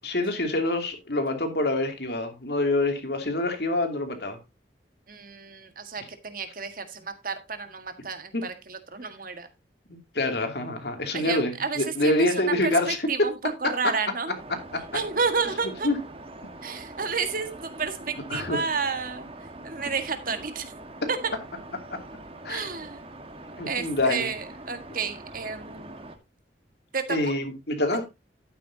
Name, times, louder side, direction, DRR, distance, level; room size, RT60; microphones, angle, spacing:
voice 1, 0.0-4.4 8.3-8.4 9.9-13.3 13.6-13.9 14.7-14.8 15.8-16.0 18.3-18.6 21.0-21.1 22.4-22.7 23.6-24.3 27.1-28.0, left 2 dB, 60° left, 2.7 m, -26 dB
voice 2, 5.1-9.5 11.1-14.4 14.9-15.9 16.6-19.3 19.6-20.7 21.1-21.3 22.5-23.0 23.7-26.1 26.9-27.2 27.9-28.0, right 5 dB, 50° right, 1.7 m, -31 dB
sound 1, 14.3-26.2, right 2 dB, 30° right, 1.6 m, -43 dB
12.0 x 9.0 x 2.8 m
head